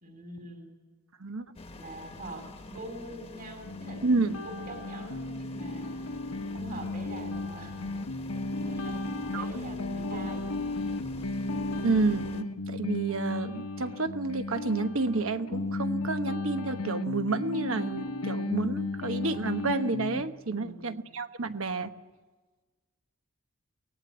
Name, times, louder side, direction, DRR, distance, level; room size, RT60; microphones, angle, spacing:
voice 1, 0.0-0.7 1.7-4.0 4.4-5.9 6.5-7.7 8.5-10.5 20.5-21.0, right 1 dB, 40° right, 4 dB, 4.0 m, -44 dB
voice 2, 1.2-1.5 4.0-4.4 9.3-9.5 10.1-10.2 11.8-21.9, right 3 dB, 70° right, 9 dB, 1.1 m, -30 dB
sound 1, 1.5-12.4, left 2 dB, 25° left, 1.1 m, -46 dB
sound 2, 3.7-20.2, left 2 dB, 85° left, 1.2 m, -34 dB
24.0 x 18.5 x 8.0 m, 1.3 s
head